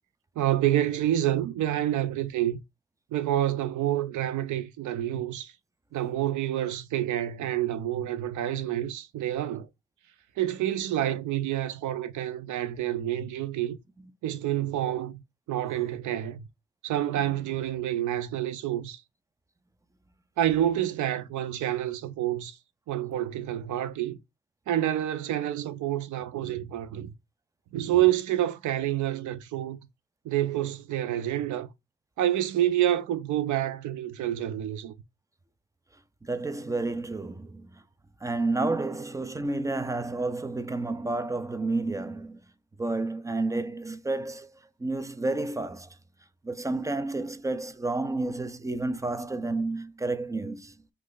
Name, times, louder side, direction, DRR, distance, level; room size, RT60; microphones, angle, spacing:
voice 1, 0.4-2.6 3.1-5.5 5.9-9.7 10.4-13.8 14.2-15.2 15.5-16.4 16.8-19.0 20.4-22.6 22.9-24.2 24.7-27.1 27.7-29.8 30.2-31.7 32.2-34.9, right 12 dB, 80° right, 0.7 m, -28 dB
voice 2, 36.2-37.7 38.2-42.4 42.8-44.5 44.8-45.9 46.4-50.7, right 2 dB, 10° right, 0.3 m, -30 dB
3.1 x 2.4 x 3.8 m
cardioid pair, 90°, 30 cm